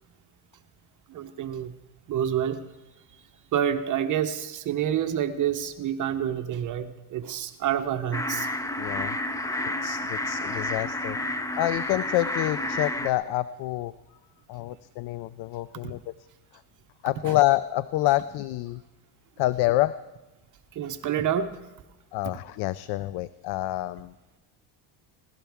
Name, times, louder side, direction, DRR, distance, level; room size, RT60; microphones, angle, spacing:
voice 1, 1.1-1.7 2.1-2.6 3.5-8.5 17.3-17.4 20.7-21.6, right 9 dB, 45° right, 8 dB, 0.9 m, -28 dB
sound 1, 8.1-13.1, left 1 dB, 10° left, 0.6 m, -30 dB
voice 2, 8.8-9.2 9.8-11.2 11.6-13.9 14.5-16.1 17.0-18.8 19.4-20.0 22.1-24.1, left 16 dB, 65° left, 16 dB, 0.5 m, -27 dB
23.5 x 17.0 x 3.5 m, 1.1 s
cardioid pair, 125°, 41 cm